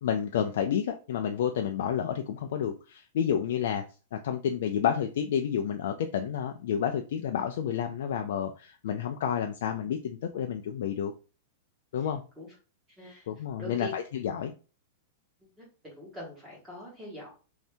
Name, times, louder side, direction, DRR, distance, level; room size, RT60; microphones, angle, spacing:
voice 1, 0.0-3.8 4.1-11.1 11.9-12.2 13.3-14.5, left 8 dB, 60° left, 5 dB, 0.3 m, -30 dB
voice 2, 13.0-13.3 13.6-13.9 15.6-17.3, equal, 10° right, -5 dB, 1.2 m, -43 dB
2.7 x 2.6 x 3.3 m, 0.35 s
supercardioid pair, 175°, 0 cm